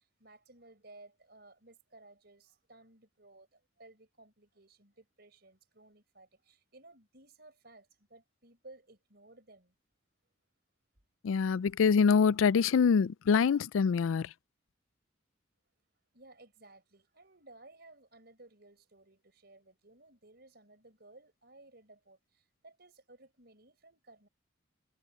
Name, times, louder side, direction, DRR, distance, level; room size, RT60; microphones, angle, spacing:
voice 1, 0.0-9.7 16.1-24.3, right 2 dB, 55° right, 5.3 m, -58 dB
voice 2, 11.2-14.3, left 6 dB, 90° left, 0.4 m, -25 dB
head